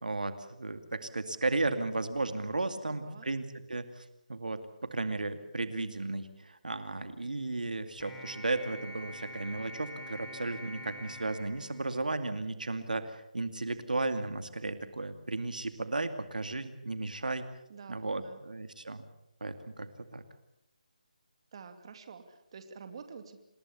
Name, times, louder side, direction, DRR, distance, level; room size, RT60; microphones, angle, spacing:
voice 1, 0.0-17.5 17.9-19.0 19.4-20.2, right 2 dB, 80° right, 9 dB, 2.4 m, -35 dB
voice 2, 2.8-3.3 17.7-18.4 21.5-23.4, right 5 dB, 40° right, 7 dB, 2.6 m, -48 dB
sound 1, 8.0-12.5, equal, 5° left, 3.6 m, -46 dB
27.5 x 20.5 x 7.1 m, 0.87 s
figure-of-eight pair, 160°, 4 cm